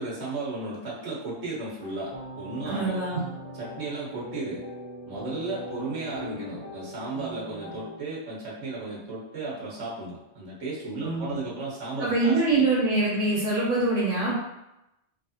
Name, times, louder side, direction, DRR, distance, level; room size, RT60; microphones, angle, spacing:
voice 1, 0.0-3.1 3.5-4.6 5.0-12.7, right 3 dB, 60° right, -5 dB, 1.4 m, -34 dB
sound 1, 1.8-8.0, left 1 dB, 35° left, 0.7 m, -40 dB
voice 2, 2.6-3.2 11.0-11.4 12.0-14.3, right 2 dB, 75° right, -8 dB, 1.3 m, -24 dB
3.3 x 2.4 x 2.7 m, 0.90 s
omnidirectional pair, 1.3 m